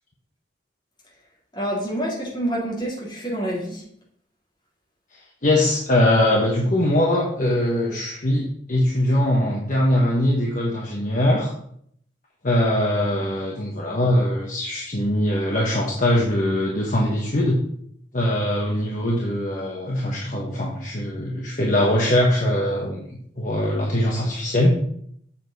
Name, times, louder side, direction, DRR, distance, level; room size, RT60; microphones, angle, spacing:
voice 1, 1.5-3.8, right 1 dB, 25° left, -6 dB, 3.3 m, -27 dB
voice 2, 5.4-11.5 12.4-17.6 18.1-23.0 23.4-24.8, left 1 dB, 45° left, -2 dB, 1.2 m, -21 dB
7.2 x 7.1 x 4.1 m, 0.67 s
head